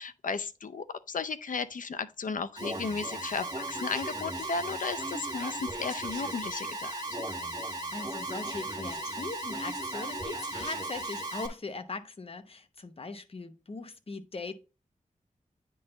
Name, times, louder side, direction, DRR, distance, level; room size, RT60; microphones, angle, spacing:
voice 1, 0.0-7.0, left 5 dB, 70° left, 0.6 m, -35 dB
Alarm, 2.6-11.5, right 1 dB, 30° right, 1.7 m, -36 dB
voice 2, 7.6-14.5, left 3 dB, 45° left, 0.9 m, -40 dB
9.2 x 3.9 x 3.9 m
wide cardioid pair, 90°, 14 cm